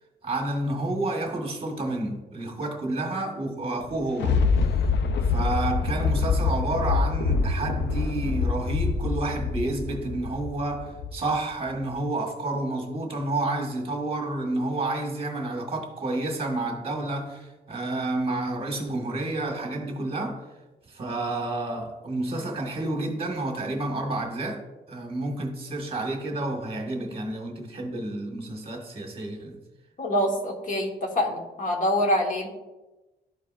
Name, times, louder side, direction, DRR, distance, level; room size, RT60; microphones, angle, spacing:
voice 1, 0.2-4.4 5.2-20.4 20.9-24.6 24.9-29.6, right 2 dB, 30° right, 1.5 m, -30 dB
Thunder, 3.8-11.3 11.8-11.9, left 4 dB, 85° left, 0.5 m, -25 dB
voice 2, 30.0-32.5, equal, 45° left, 1.3 m, -25 dB
12.5 x 4.7 x 2.4 m
wide cardioid pair, 145°, 18 cm